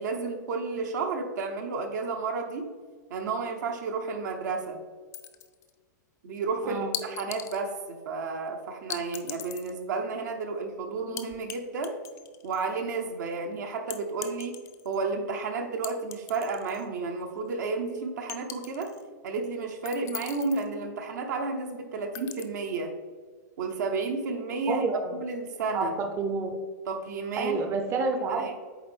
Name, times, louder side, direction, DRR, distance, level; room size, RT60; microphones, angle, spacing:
voice 1, 0.0-2.8 3.1-4.8 6.2-12.0 12.4-18.9 19.2-22.9 23.6-24.8 25.1-26.0 26.9-27.6 28.3-28.5, right 4 dB, 70° right, 4 dB, 1.0 m, -32 dB
sound 1, 5.1-5.7 6.9-7.6 8.9-9.7 11.2-11.6 11.8-12.7 13.9-15.0 15.8-16.8 17.2-17.3 18.3-19.0 19.8-20.7 22.1-22.4, left 11 dB, 30° left, 0.5 m, -39 dB
voice 2, 6.6-7.0 24.7-25.2 25.7-26.6 27.4-28.6, right 4 dB, 25° right, 5 dB, 0.6 m, -29 dB
8.6 x 3.3 x 3.5 m, 1.5 s
hypercardioid pair, 125°, 10 cm